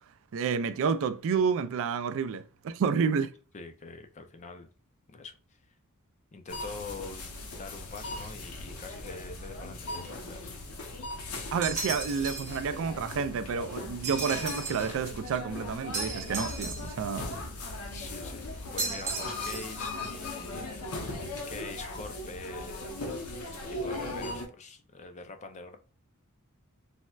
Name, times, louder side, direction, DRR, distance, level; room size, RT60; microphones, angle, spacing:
voice 1, 0.3-3.3 11.5-17.3, right 6 dB, 60° right, 0.3 m, -30 dB
voice 2, 3.5-4.7 5.1-5.7 6.3-7.3 7.6-10.5 14.1-14.4 17.9-18.4 18.7-20.8 21.5-23.2 23.6-25.8, left 3 dB, 30° left, 0.4 m, -44 dB
sound 1, 6.5-24.5, left 2 dB, 75° left, 0.7 m, -39 dB
sound 2, 11.6-12.6 14.0-14.9 15.9-17.1 18.8-19.8, right 3 dB, 35° right, 1.0 m, -35 dB
sound 3, 15.9-20.9, left 1 dB, 90° right, 0.8 m, -47 dB
4.2 x 2.1 x 2.3 m
head